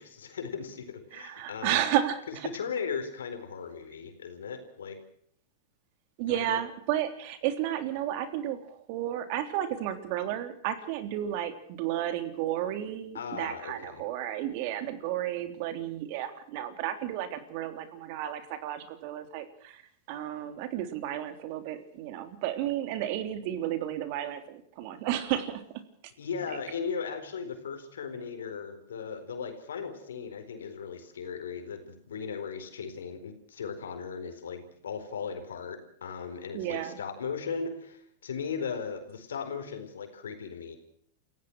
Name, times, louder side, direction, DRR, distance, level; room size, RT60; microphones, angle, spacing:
voice 1, 0.0-1.8 2.3-5.0 6.3-6.6 13.1-14.0 26.2-40.8, left 6 dB, 80° left, 7 dB, 4.3 m, -37 dB
voice 2, 1.1-2.5 6.2-19.8 20.1-25.6 36.5-37.0, right 11 dB, 55° right, 9 dB, 3.4 m, -32 dB
28.5 x 16.0 x 6.2 m, 0.63 s
hypercardioid pair, 105°, 0 cm